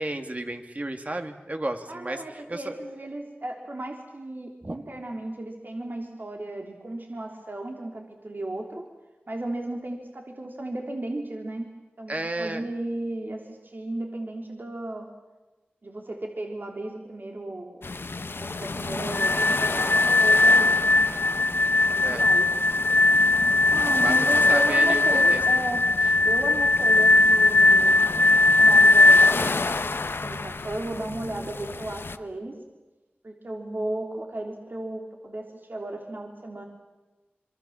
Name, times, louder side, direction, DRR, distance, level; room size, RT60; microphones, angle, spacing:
voice 1, 0.0-2.7 4.6-4.8 12.1-12.7 22.0-22.3 24.0-25.4, right 1 dB, 40° right, 6 dB, 2.7 m, -32 dB
voice 2, 1.9-8.9 9.3-11.7 12.0-15.1 15.8-17.9 18.4-21.0 21.9-22.5 23.7-25.8 26.2-28.2 28.6-32.5 33.2-36.6, right 1 dB, 55° right, 2 dB, 3.4 m, -35 dB
sound 1, 17.8-32.2, left 3 dB, 70° left, 1.0 m, -32 dB
sound 2, 19.1-29.3, left 2 dB, 40° left, 2.1 m, -19 dB
26.5 x 24.5 x 7.3 m, 1.2 s
cardioid pair, 40°, 4 cm